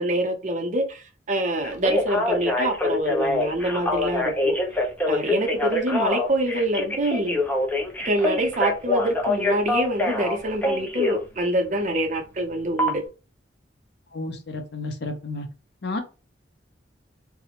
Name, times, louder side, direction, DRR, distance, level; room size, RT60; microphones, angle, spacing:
voice 1, 0.0-4.5 5.1-7.4 8.0-13.0, right 1 dB, 40° right, 0.5 m, -25 dB
Telephone, 1.6-11.2 12.8-12.9, left 2 dB, 10° left, 0.4 m, -25 dB
voice 2, 14.1-15.5 15.8-16.0, left 2 dB, 60° left, 0.5 m, -31 dB
2.4 x 2.0 x 2.8 m
head